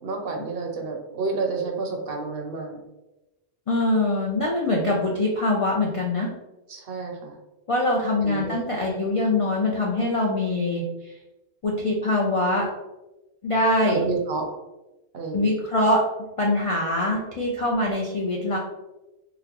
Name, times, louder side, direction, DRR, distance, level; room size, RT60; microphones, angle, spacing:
voice 1, 0.0-2.8 6.7-7.3 8.2-8.7 13.8-14.4 15.1-15.5, right 4 dB, 65° right, 2 dB, 0.8 m, -30 dB
voice 2, 3.7-6.3 7.7-10.9 11.6-12.7 13.4-14.1 15.3-16.0 16.4-18.6, left 2 dB, 55° left, -2 dB, 0.3 m, -23 dB
3.8 x 2.2 x 2.9 m, 1.0 s
omnidirectional pair, 1.2 m